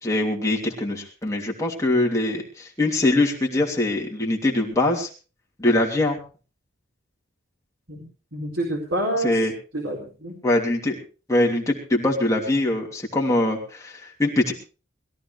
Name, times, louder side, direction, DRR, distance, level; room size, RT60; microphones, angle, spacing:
voice 1, 0.0-5.1 5.6-6.2 9.2-9.5 10.4-11.0 11.3-14.5, left 1 dB, 15° left, -1 dB, 2.9 m, -23 dB
voice 2, 8.3-10.4, right 1 dB, 75° right, -1 dB, 4.3 m, -28 dB
22.0 x 14.0 x 3.3 m, 0.35 s
head